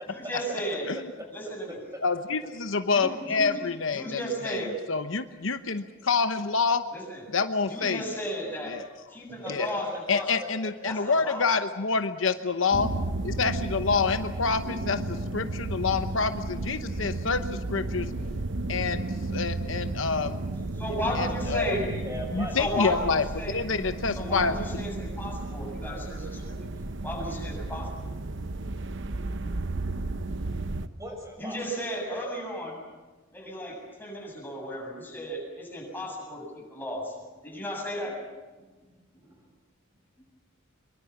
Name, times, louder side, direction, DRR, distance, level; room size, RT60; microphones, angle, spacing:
voice 1, 0.1-0.9 1.3-1.8 2.9-3.5 3.9-4.8 6.9-7.2 7.7-8.8 9.1-10.3 10.8-11.5 20.8-21.9 22.5-23.6 24.1-26.6 27.0-27.9 31.4-32.8 33.3-37.2 37.4-38.2, equal, 10° left, -1 dB, 7.5 m, -34 dB
voice 2, 2.0-6.9 7.3-8.0 8.7-8.9 9.5-9.7 10.1-12.9 13.2-18.1 18.7-19.0 19.3-20.4 21.1-21.7 22.3-24.8, left 4 dB, 70° left, 9 dB, 1.0 m, -27 dB
voice 3, 9.3-10.0 21.3-22.6 31.0-31.6 37.6-37.7 39.1-39.4, equal, 15° right, 3 dB, 6.3 m, -40 dB
sound 1, 12.7-30.9, right 2 dB, 60° right, 0.9 m, -33 dB
24.5 x 23.0 x 7.3 m, 1.2 s
head